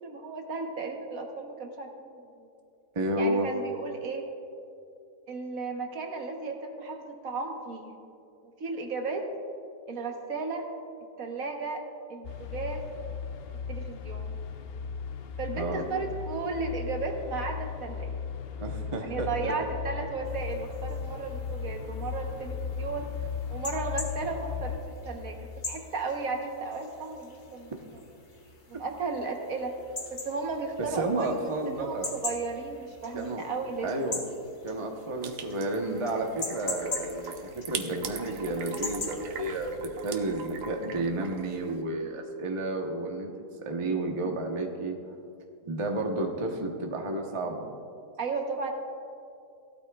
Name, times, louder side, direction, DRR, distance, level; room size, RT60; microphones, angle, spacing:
voice 1, 0.0-2.5 3.2-4.3 5.3-7.9 8.6-9.3 9.9-10.7 11.2-11.8 12.1-12.9 13.7-14.3 15.4-18.1 19.0-23.1 23.5-25.4 25.7-27.7 28.7-29.8 30.1-33.9 48.2-48.7, right 3 dB, 60° right, 3 dB, 1.4 m, -34 dB
voice 2, 2.9-3.5 15.6-15.8 18.6-19.5 30.8-32.1 33.1-33.4 33.8-34.2 34.6-39.8 40.0-43.3 43.6-44.9 45.6-47.7, right 2 dB, 25° right, 2 dB, 0.8 m, -31 dB
sound 1, 12.2-24.8, left 6 dB, 80° left, 0.5 m, -36 dB
sound 2, 20.2-39.8, left 3 dB, 35° left, 1.0 m, -42 dB
sound 3, 35.2-41.8, right 7 dB, 85° right, 1.4 m, -41 dB
17.0 x 12.5 x 2.3 m, 2.5 s
omnidirectional pair, 1.8 m